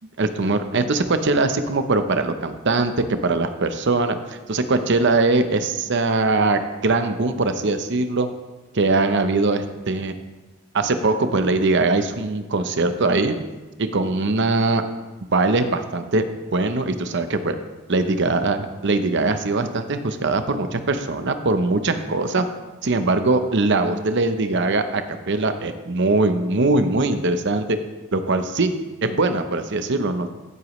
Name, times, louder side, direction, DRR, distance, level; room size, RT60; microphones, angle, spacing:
voice 1, 0.2-8.3 8.7-10.1 10.7-13.4 13.8-14.8 15.3-16.2 16.5-17.6 17.9-22.5 22.8-27.8 28.1-28.7 29.0-30.3, right 3 dB, 55° right, 9 dB, 0.8 m, -21 dB
14.5 x 8.1 x 3.2 m, 1.2 s
head